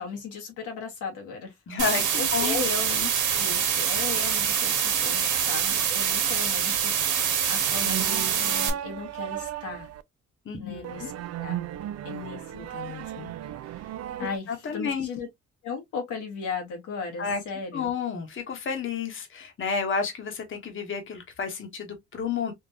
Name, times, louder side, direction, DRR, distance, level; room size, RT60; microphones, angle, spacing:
voice 1, 0.0-9.9 10.6-11.6 12.0-13.3 13.6-15.3 15.6-17.9, left 5 dB, 90° left, 1.6 m, -37 dB
voice 2, 1.7-2.7 10.5-11.1 14.5-15.1 17.2-17.4 17.7-22.5, left 5 dB, 40° left, 1.1 m, -31 dB
sound 1, 1.8-8.7, right 8 dB, 80° right, 1.2 m, -25 dB
sound 2, 7.6-10.0 10.8-14.4, right 12 dB, 55° right, 0.4 m, -36 dB
3.6 x 2.5 x 2.7 m
cardioid pair, 90°, 30 cm